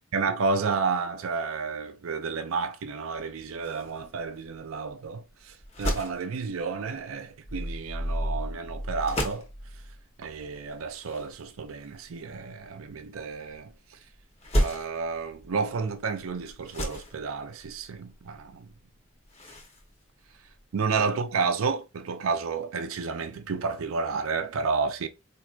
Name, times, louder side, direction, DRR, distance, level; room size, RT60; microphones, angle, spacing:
voice 1, 0.1-9.5 10.2-13.7 14.6-18.7 20.7-25.1, right 4 dB, 90° right, 0.5 m, -31 dB
sound 1, 3.6-21.1, equal, 30° left, 1.0 m, -37 dB
sound 2, 7.4-10.0 10.3-10.5, equal, 80° left, 1.1 m, -34 dB
4.4 x 2.6 x 2.4 m
head